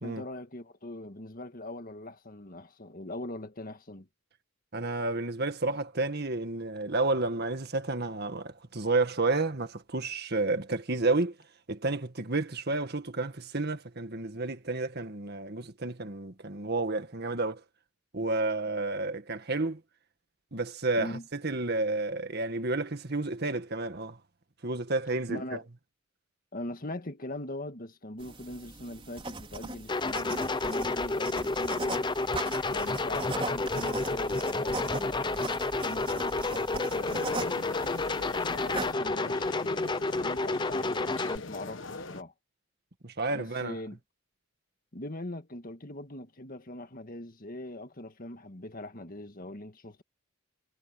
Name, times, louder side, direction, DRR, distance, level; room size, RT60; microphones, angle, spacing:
voice 1, 0.0-4.1 21.0-21.3 25.3-25.6 26.5-32.1 32.7-35.4 35.8-38.1 38.4-42.3 43.3-44.0 44.9-50.0, left 1 dB, 45° left, 1.8 m, -41 dB
voice 2, 4.7-11.4 11.7-17.6 18.1-19.8 20.5-24.2 24.6-25.4 43.0-43.8, right 2 dB, 50° right, 1.8 m, -31 dB
sound 1, 28.2-38.9, right 3 dB, 25° right, 4.8 m, -40 dB
sound 2, 29.9-41.4, left 3 dB, 20° left, 0.7 m, -30 dB
sound 3, 36.9-42.2, left 3 dB, 65° left, 1.4 m, -41 dB
head